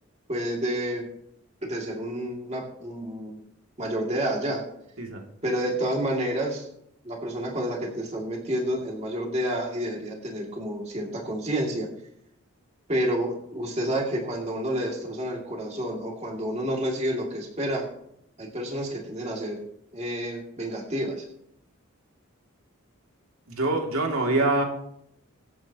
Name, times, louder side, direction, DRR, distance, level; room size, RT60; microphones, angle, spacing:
voice 1, 0.3-1.0 1.6-3.4 3.8-4.6 5.4-6.7 7.0-11.9 12.9-17.8 18.4-19.6 19.9-21.2, right 1 dB, 30° right, -1 dB, 2.5 m, -29 dB
voice 2, 23.5-24.6, right 2 dB, 85° right, 1 dB, 2.6 m, -25 dB
24.0 x 8.7 x 3.0 m, 0.74 s
head